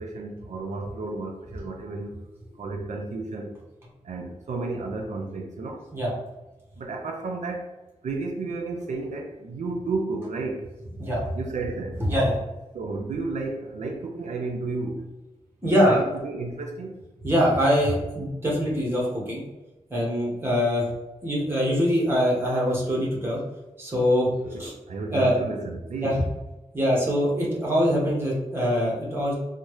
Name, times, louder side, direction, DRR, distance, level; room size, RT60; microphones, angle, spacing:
voice 1, 0.0-2.1 2.6-3.5 4.0-5.9 6.8-7.7 8.0-10.7 11.3-12.0 12.7-15.1 15.9-17.0 24.4-26.2, right 3 dB, 85° right, 3 dB, 0.4 m, -32 dB
voice 2, 12.1-12.4 15.6-16.0 17.2-19.4 19.9-20.9 21.2-23.4 23.8-24.3 24.6-24.7 25.1-25.3 26.0-26.1 26.7-29.3, equal, 20° right, -4 dB, 1.2 m, -23 dB
4.0 x 2.0 x 3.1 m, 1.0 s
wide cardioid pair, 125°, 12 cm